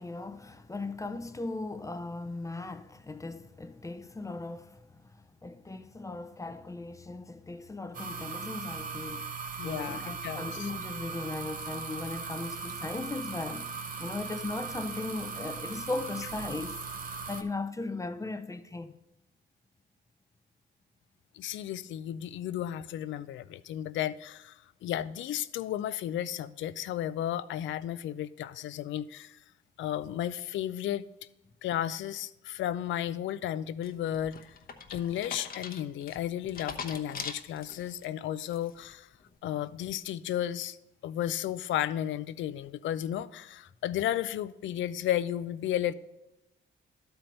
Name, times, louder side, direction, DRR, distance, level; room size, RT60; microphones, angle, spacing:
voice 1, 0.0-9.4 9.6-18.9, left 2 dB, 15° left, 0.5 m, -38 dB
sound 1, 7.9-17.4, right 5 dB, 45° right, 0.9 m, -39 dB
voice 2, 9.6-10.7 21.3-24.5 24.8-29.4 29.8-31.0 31.6-34.4 34.9-39.1 39.4-40.8 41.0-45.9, left 11 dB, 75° left, 0.4 m, -33 dB
sound 2, 33.8-38.0 38.5-38.9, left 5 dB, 50° left, 0.9 m, -41 dB
12.0 x 4.5 x 5.3 m
cardioid pair, 90°, 20 cm